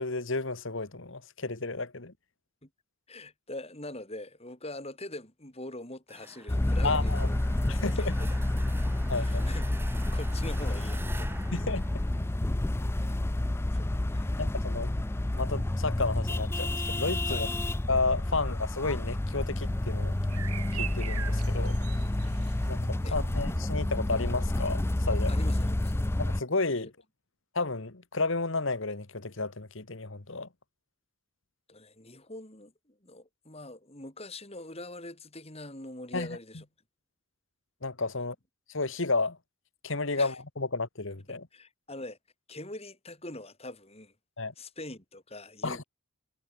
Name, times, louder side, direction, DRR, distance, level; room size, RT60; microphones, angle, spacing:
voice 1, 0.0-2.1 6.8-7.3 7.7-8.1 9.1-9.4 11.5-11.8 14.4-15.0 15.3-17.5 17.9-20.1 20.5-21.8 22.7-24.8 25.1-25.5 26.2-26.9 27.6-30.5 36.1-36.3 37.8-38.4 38.7-39.4 39.8-41.5 44.4-44.5 45.6-45.8, left 3 dB, 60° left, 1.6 m, -32 dB
voice 2, 3.1-7.3 7.8-8.3 9.2-9.7 10.1-11.3 13.0-13.2 13.7-14.4 17.3-17.8 23.0-23.2 25.3-26.0 26.8-26.9 31.7-36.6 40.2-40.4 41.3-42.2 42.5-44.1 44.6-45.8, left 2 dB, 25° left, 4.3 m, -43 dB
sound 1, 6.1-12.8, right 2 dB, 10° right, 1.1 m, -48 dB
sound 2, 6.5-26.4, left 1 dB, 10° left, 0.3 m, -29 dB
sound 3, 19.5-24.5, right 6 dB, 90° right, 2.0 m, -43 dB
head